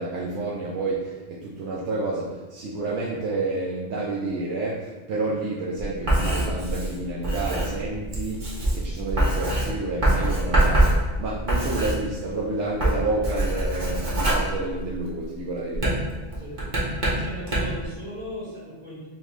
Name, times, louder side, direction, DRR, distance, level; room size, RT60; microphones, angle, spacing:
voice 1, 0.0-16.0, right 2 dB, 85° right, -5 dB, 0.9 m, -29 dB
Writing, 5.8-12.4 12.7-15.2 15.7-17.9, right 1 dB, 45° right, 1.1 m, -24 dB
voice 2, 16.4-16.7 17.1-19.1, equal, 60° right, -8 dB, 1.7 m, -37 dB
5.7 x 2.0 x 3.1 m, 1.2 s
omnidirectional pair, 1.2 m